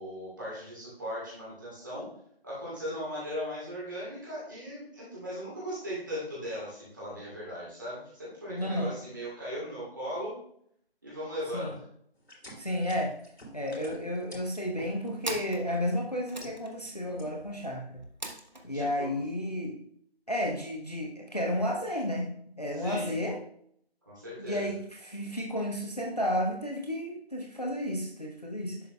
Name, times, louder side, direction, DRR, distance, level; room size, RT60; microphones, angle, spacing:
voice 1, 0.0-2.0 2.4-10.4 11.0-11.8 18.7-19.1 22.7-23.1 24.1-24.6, equal, 20° right, -9 dB, 2.5 m, -38 dB
voice 2, 8.5-8.9 11.5-11.8 12.6-13.2 13.5-18.0 18.6-19.8 20.3-23.4 24.4-28.8, left 1 dB, 40° left, 1 dB, 0.7 m, -32 dB
sound 1, 12.2-15.8 16.2-16.9 17.2-17.6, equal, 85° left, 2.7 m, -48 dB
sound 2, 12.4-12.7 13.0-13.1 13.3-14.0 14.6-18.7, right 1 dB, 45° right, 1.0 m, -42 dB
11.0 x 5.1 x 2.2 m, 0.67 s
figure-of-eight pair, 175°, 31 cm